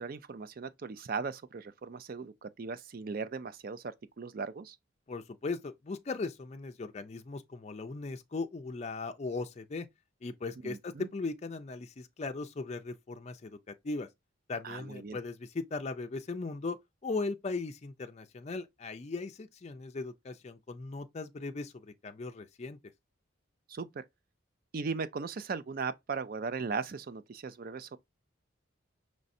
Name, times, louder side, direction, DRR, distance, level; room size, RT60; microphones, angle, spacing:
voice 1, 0.0-4.8 10.6-11.1 14.6-15.2 23.7-24.0 24.7-28.0, right 5 dB, 45° right, 0.4 m, -38 dB
voice 2, 5.1-9.9 10.2-14.1 14.5-16.8 17.0-22.8, left 3 dB, 35° left, 0.4 m, -38 dB
5.2 x 3.2 x 2.6 m
head